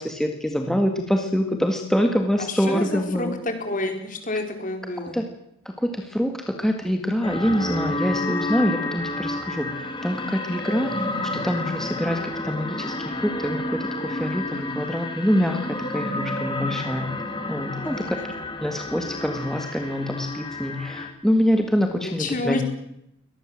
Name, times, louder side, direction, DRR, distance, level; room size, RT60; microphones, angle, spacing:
voice 1, 0.0-3.4 5.1-5.3 5.7-17.1 17.5-18.2 18.6-22.6, equal, ahead, 4 dB, 1.8 m, -25 dB
voice 2, 2.5-5.2 17.8-18.2 22.0-22.6, left 2 dB, 40° left, 6 dB, 4.3 m, -29 dB
sound 1, 7.2-21.1, left 2 dB, 25° left, 4.3 m, -30 dB
23.5 x 19.5 x 7.6 m, 0.79 s
head